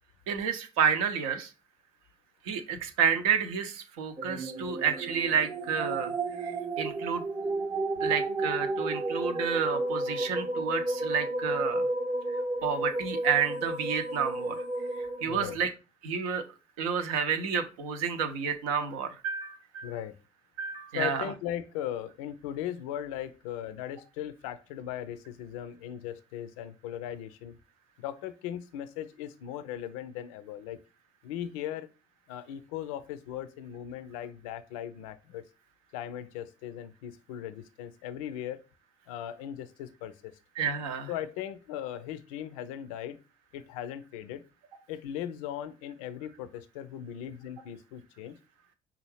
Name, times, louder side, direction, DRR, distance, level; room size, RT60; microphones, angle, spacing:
voice 1, 0.3-1.5 2.4-6.1 6.4-7.2 8.0-11.8 12.3-14.6 15.0-15.7 16.0-16.4 16.8-19.9 20.6-21.3 40.6-41.1, right 7 dB, 70° right, 0.6 m, -30 dB
sound 1, 4.2-15.6, right 2 dB, 25° right, 0.7 m, -32 dB
voice 2, 15.3-15.6 19.8-20.1 20.9-27.5 28.0-30.8 31.2-31.9 32.3-35.5 35.9-38.6 39.1-40.3 41.1-43.2 43.5-44.4 44.9-48.4, left 11 dB, 70° left, 0.4 m, -38 dB
5.6 x 2.4 x 3.2 m
figure-of-eight pair, 50°, 19 cm